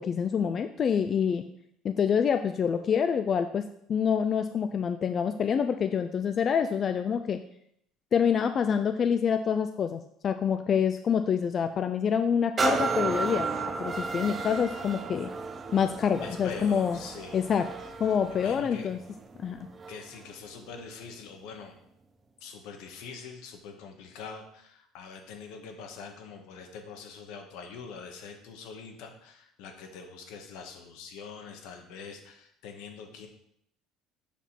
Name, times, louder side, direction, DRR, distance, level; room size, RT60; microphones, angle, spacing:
voice 1, 0.0-1.4 1.8-3.6 3.9-7.4 8.1-15.3 15.7-17.0 17.3-17.7 18.0-19.0 19.4-19.6, left 7 dB, 30° left, 8 dB, 0.3 m, -26 dB
sound 1, 12.6-20.2 20.7-20.9, right 4 dB, 20° right, 0.6 m, -33 dB
voice 2, 16.2-17.4 18.3-18.9 19.9-21.7 22.4-33.3, left 5 dB, 75° left, 4 dB, 1.3 m, -44 dB
7.3 x 3.6 x 5.7 m, 0.72 s
cardioid pair, 150°, 0 cm